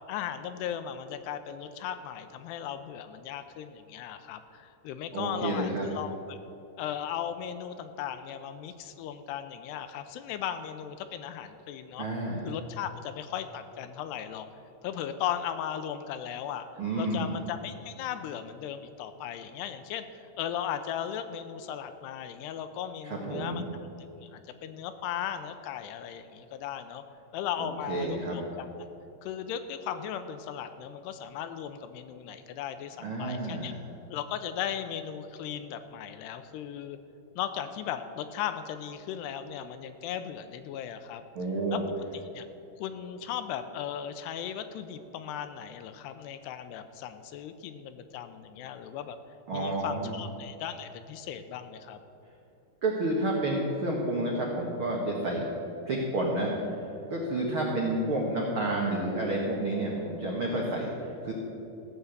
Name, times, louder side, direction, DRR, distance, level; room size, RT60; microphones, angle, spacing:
voice 1, 0.1-6.4 6.8-12.1 12.4-14.5 14.8-16.7 17.0-23.6 24.2-27.0 27.3-28.7 29.2-33.7 34.1-37.0 37.4-41.2 41.7-41.8 42.3-42.5 42.8-49.2 49.5-52.0, left 9 dB, 85° left, 10 dB, 2.6 m, -37 dB
voice 2, 5.1-5.9 12.0-12.4 16.8-17.4 23.0-23.6 27.6-28.3 33.0-33.7 41.3-41.8 49.5-50.2 52.8-55.5 55.9-56.5 57.1-61.3, right 1 dB, 80° right, -2 dB, 1.2 m, -30 dB
15.5 x 6.9 x 8.0 m, 3.0 s
omnidirectional pair, 4.9 m